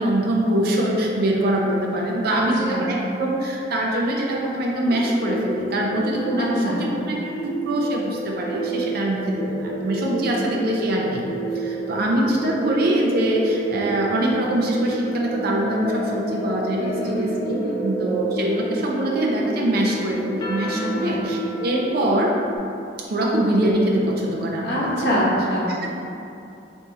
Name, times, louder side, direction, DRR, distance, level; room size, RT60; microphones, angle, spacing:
voice 1, 0.0-11.3 11.5-22.3 23.1-25.2 25.7-25.9, right 1 dB, 55° right, -2 dB, 0.5 m, -23 dB
voice 2, 2.3-2.8 6.4-6.8 16.8-17.3 17.6-17.9 20.8-21.2 24.6-25.7, equal, 60° left, -8 dB, 0.9 m, -25 dB
sound 1, 4.9-22.6, right 1 dB, 25° left, 0.5 m, -30 dB
4.2 x 2.7 x 3.5 m, 2.7 s
head